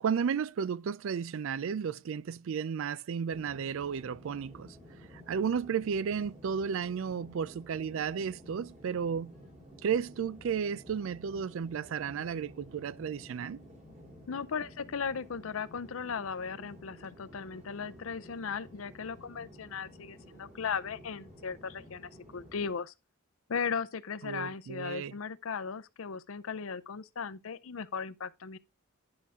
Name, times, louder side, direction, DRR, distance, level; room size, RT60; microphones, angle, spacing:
voice 1, 0.0-4.8 5.1-9.4 9.8-13.6 24.2-25.1, right 7 dB, 65° right, 0.4 m, -33 dB
sound 1, 3.3-22.7, equal, 35° right, 3.3 m, -53 dB
voice 2, 14.3-22.9 23.5-28.6, left 6 dB, 70° left, 0.6 m, -37 dB
10.5 x 5.6 x 3.6 m
head